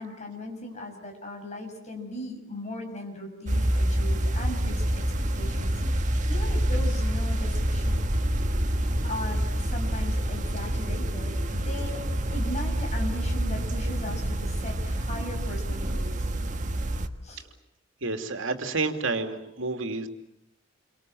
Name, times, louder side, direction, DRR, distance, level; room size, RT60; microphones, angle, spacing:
voice 1, 0.0-5.0 5.3-5.9 6.3-8.0 9.0-12.0 12.3-16.3 17.2-17.4, left 1 dB, 35° left, 3 dB, 6.6 m, -38 dB
sound 1, 3.5-17.1, right 1 dB, 40° right, 1.6 m, -27 dB
voice 2, 18.0-20.1, right 3 dB, 75° right, 6 dB, 2.8 m, -29 dB
29.5 x 25.0 x 7.8 m, 0.79 s
head